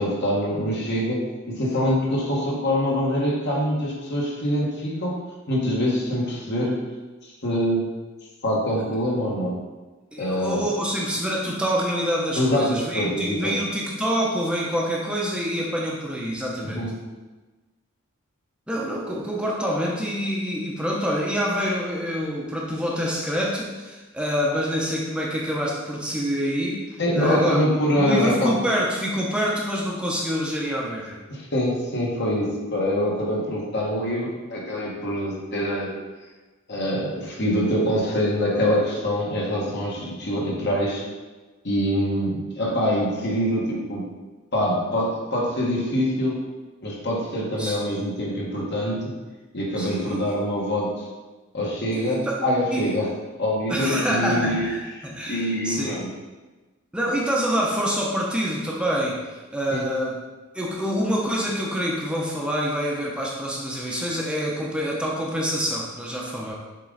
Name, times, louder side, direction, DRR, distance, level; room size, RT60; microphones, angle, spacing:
voice 1, 0.0-5.2 5.5-6.7 7.2-7.8 8.4-9.6 10.2-10.6 12.3-13.5 16.6-16.9 27.0-28.6 31.3-35.9 36.7-41.0 41.6-44.0 44.5-46.4 46.8-49.0 49.5-51.0 51.5-53.1 53.4-54.7 55.3-56.1 59.7-59.8, equal, 55° left, -3 dB, 1.5 m, -24 dB
voice 2, 10.1-16.9 18.7-27.6 27.9-31.2 47.6-47.8 49.8-50.3 51.9-52.4 52.7-52.9 53.7-56.0 56.9-60.2 60.5-66.5, equal, 5° right, -4 dB, 0.7 m, -26 dB
7.3 x 3.7 x 3.9 m, 1.2 s
head